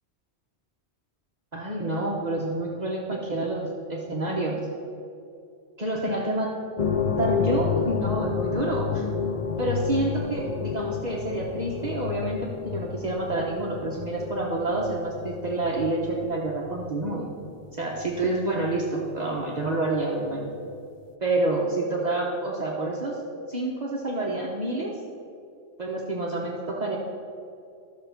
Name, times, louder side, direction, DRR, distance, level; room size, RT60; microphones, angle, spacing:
voice 1, 1.5-4.6 5.8-6.5 7.2-9.0 9.6-17.3 17.7-20.5 21.2-23.2 23.5-24.9 25.8-27.0, right 2 dB, 40° right, -3 dB, 1.1 m, -28 dB
sound 1, 6.8-19.4 19.6-19.8 20.4-20.5, left 6 dB, 45° left, 0.5 m, -30 dB
12.5 x 6.8 x 5.7 m, 2.5 s
omnidirectional pair, 1.2 m